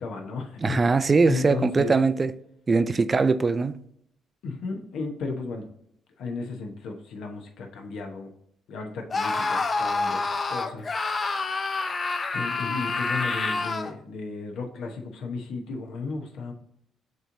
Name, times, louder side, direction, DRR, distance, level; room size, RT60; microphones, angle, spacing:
voice 1, 0.0-0.9 1.2-1.9 4.4-5.7 6.2-8.3 8.7-10.2 10.5-10.9 12.3-16.5, left 4 dB, 75° left, 1.0 m, -34 dB
voice 2, 0.6-2.3 2.7-3.8, right 4 dB, 30° right, 0.3 m, -21 dB
Screaming, 9.1-13.9, left 3 dB, 35° left, 0.5 m, -27 dB
6.5 x 3.0 x 2.6 m
cardioid pair, 95°, 0 cm